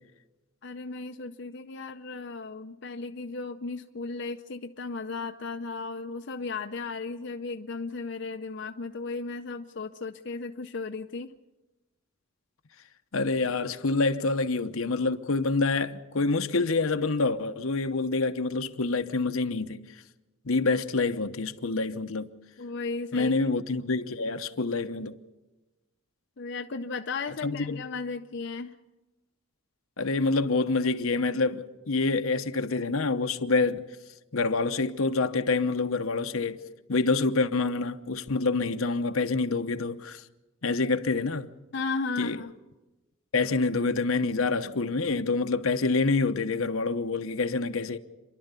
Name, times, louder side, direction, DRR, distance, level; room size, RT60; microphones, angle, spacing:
voice 1, 0.6-11.3 22.6-23.3 26.4-28.8 41.7-42.5, left 4 dB, 55° left, 0.6 m, -35 dB
voice 2, 13.1-19.8 20.4-22.3 23.1-25.2 27.4-27.8 30.0-33.9 34.3-36.6 36.9-40.2 40.6-41.5 42.2-42.4 43.3-48.0, left 3 dB, 75° left, 0.9 m, -27 dB
28.5 x 11.5 x 8.2 m
head